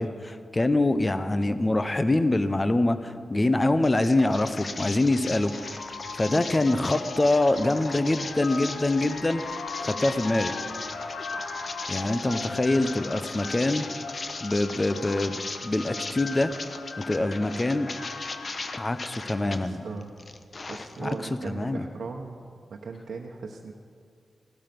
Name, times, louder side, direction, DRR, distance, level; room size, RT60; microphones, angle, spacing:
voice 1, 0.0-5.5 6.2-9.4 9.8-10.5 11.9-13.9 14.4-15.4 15.6-16.5 17.1-17.9 18.7-19.8 21.0-21.2 21.4-21.9, left 2 dB, 25° left, 11 dB, 0.8 m, -24 dB
sound 1, 3.8-19.6 20.0-21.3, left 3 dB, 45° left, 0.9 m, -38 dB
sound 2, 5.1-20.0, left 4 dB, 90° left, 1.0 m, -39 dB
voice 2, 19.2-20.1 20.7-22.4 22.7-23.7, right 4 dB, 75° right, -1 dB, 1.0 m, -38 dB
16.5 x 12.0 x 6.0 m, 2.2 s
cardioid pair, 65°, 0 cm